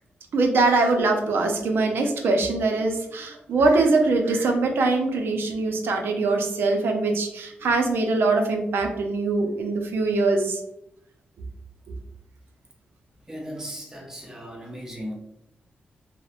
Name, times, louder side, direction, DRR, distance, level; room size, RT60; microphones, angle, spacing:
voice 1, 0.3-10.6, right 3 dB, 75° right, 3 dB, 0.4 m, -22 dB
voice 2, 13.3-15.1, equal, 15° right, -1 dB, 0.7 m, -36 dB
2.8 x 2.0 x 2.4 m, 0.80 s
cardioid pair, 90°, 4 cm